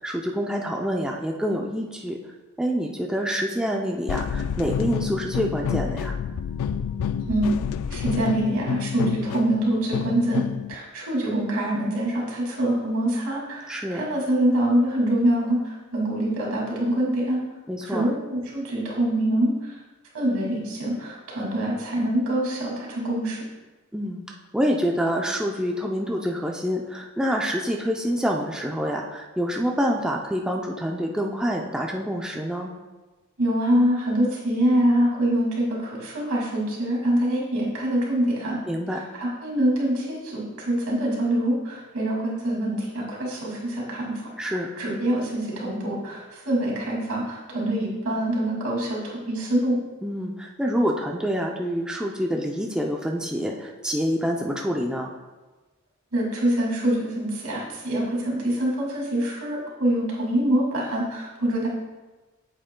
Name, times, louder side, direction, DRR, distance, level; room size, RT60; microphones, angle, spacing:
voice 1, 0.0-2.2 2.6-6.2 13.7-14.1 17.7-18.1 23.9-24.2 24.5-32.7 38.7-39.0 44.4-44.7 50.0-55.1, equal, 5° right, -1 dB, 0.4 m, -27 dB
sound 1, 4.1-10.7, left 8 dB, 85° left, 0.3 m, -29 dB
voice 2, 7.9-10.4 10.7-17.4 17.9-19.5 20.1-23.4 33.4-38.6 38.9-44.1 44.4-49.8 56.1-61.7, right 1 dB, 85° right, -3 dB, 2.4 m, -25 dB
8.7 x 7.7 x 2.2 m, 1.2 s
head